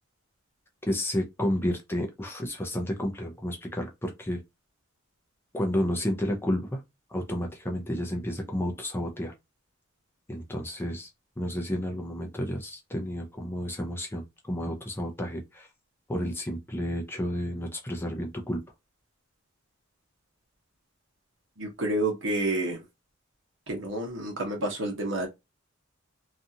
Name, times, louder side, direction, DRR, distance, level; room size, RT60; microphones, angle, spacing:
voice 1, 0.9-4.4 5.5-6.8 7.1-9.3 10.3-11.1 11.4-15.7 16.1-18.6, equal, 10° left, 0.4 m, -31 dB
voice 2, 21.6-22.8 23.7-25.3, right 1 dB, 60° right, 1.0 m, -29 dB
2.6 x 2.3 x 2.7 m
head